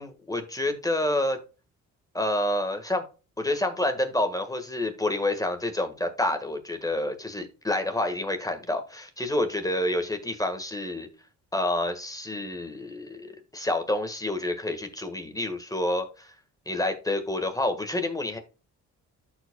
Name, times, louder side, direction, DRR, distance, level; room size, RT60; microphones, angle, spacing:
voice 1, 0.0-1.4 2.1-3.0 3.4-11.1 11.5-16.3 16.7-18.4, left 1 dB, 10° left, 1.4 m, -28 dB
13.0 x 4.8 x 2.2 m
cardioid pair, 90°, 30 cm